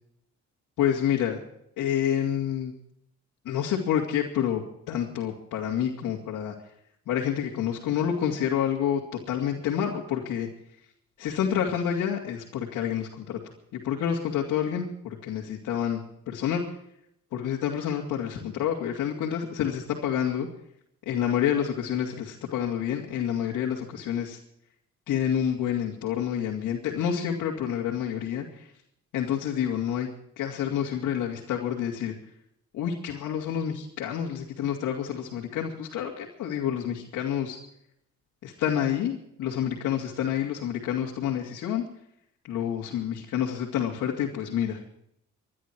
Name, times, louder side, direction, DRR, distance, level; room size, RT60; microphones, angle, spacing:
voice 1, 0.8-1.4 1.8-2.7 3.4-6.5 7.1-10.5 11.2-16.6 17.3-20.5 21.1-24.4 25.1-28.7 29.1-30.1 30.4-32.1 32.7-37.6 38.4-41.8 42.4-44.8, left 9 dB, 85° left, -2 dB, 2.7 m, -28 dB
24.5 x 11.5 x 4.7 m, 0.75 s
cardioid pair, 90°, 30 cm